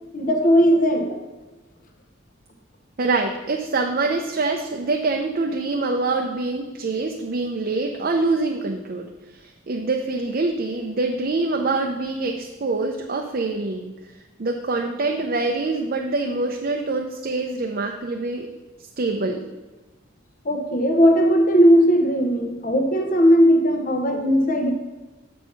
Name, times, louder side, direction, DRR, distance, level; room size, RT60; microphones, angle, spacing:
voice 1, 0.1-1.2 20.4-24.7, equal, 45° left, 4 dB, 0.8 m, -17 dB
voice 2, 3.0-18.5 19.0-19.5, right 3 dB, 45° right, 2 dB, 0.5 m, -25 dB
7.1 x 4.4 x 5.8 m, 1.2 s
head